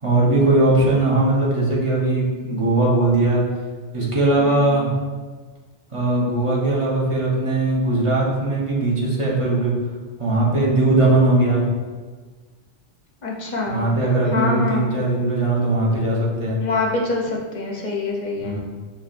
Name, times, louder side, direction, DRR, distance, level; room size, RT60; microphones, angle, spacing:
voice 1, 0.0-3.4 3.9-4.9 5.9-9.7 10.2-11.6 13.7-16.6 18.4-18.6, right 2 dB, 30° right, -6 dB, 0.9 m, -19 dB
voice 2, 4.4-4.8 13.2-13.9 14.3-14.9 16.6-18.6, left 3 dB, 45° left, -2 dB, 0.7 m, -25 dB
6.0 x 2.9 x 2.5 m, 1.4 s
omnidirectional pair, 1.2 m